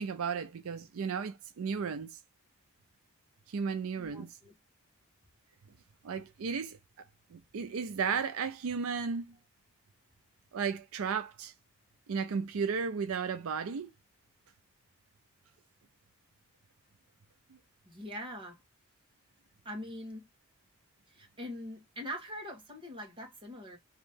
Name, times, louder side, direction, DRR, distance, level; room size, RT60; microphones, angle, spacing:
voice 1, 0.0-2.2 3.5-4.4 6.0-6.8 7.3-9.4 10.5-11.5 12.1-13.9, right 6 dB, 75° right, 0.4 m, -34 dB
voice 2, 4.0-4.5 17.8-18.6 19.6-20.2 21.1-23.8, equal, 25° right, 1.4 m, -43 dB
3.1 x 2.8 x 3.5 m
head